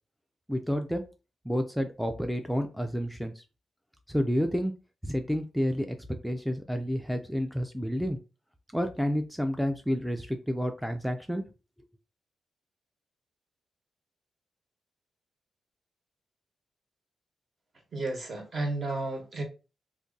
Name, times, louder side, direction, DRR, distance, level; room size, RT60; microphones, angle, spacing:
voice 1, 0.5-1.0 1.4-3.4 4.1-4.7 5.0-8.2 8.7-11.5, equal, ahead, 6 dB, 0.4 m, -30 dB
voice 2, 17.9-19.4, right 2 dB, 45° right, 2 dB, 1.2 m, -32 dB
2.6 x 2.5 x 3.8 m, 0.31 s
cardioid pair, 85°, 0 cm